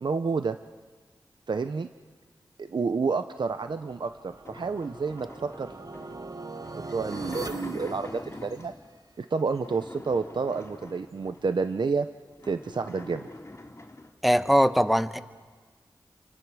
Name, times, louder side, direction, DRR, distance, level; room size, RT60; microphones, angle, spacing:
voice 1, 0.0-0.6 1.5-1.9 2.6-5.7 6.9-8.7 9.2-12.1 12.4-13.3, right 4 dB, 65° right, 9 dB, 0.8 m, -29 dB
sound 1, 3.7-8.9 9.5-11.5 12.0-12.1 12.3-14.2, left 2 dB, 35° left, 2.7 m, -44 dB
sound 2, 3.7-8.9, right 3 dB, 50° right, 1.2 m, -42 dB
voice 2, 14.2-15.2, equal, ahead, 10 dB, 1.3 m, -21 dB
29.0 x 24.0 x 6.3 m, 1.5 s
cardioid pair, 40°, 8 cm